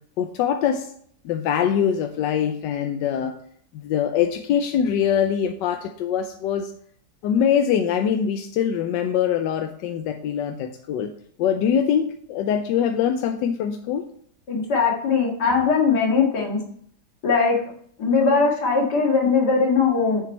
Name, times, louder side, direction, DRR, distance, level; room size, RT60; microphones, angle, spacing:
voice 1, 0.2-0.9 1.2-3.4 3.7-6.7 7.2-11.1 11.4-14.1, left 8 dB, 85° left, 6 dB, 1.3 m, -23 dB
voice 2, 14.5-16.6 17.2-17.6 18.0-20.2, left 5 dB, 65° left, -1 dB, 2.5 m, -20 dB
7.3 x 7.2 x 4.4 m, 0.62 s
omnidirectional pair, 1.9 m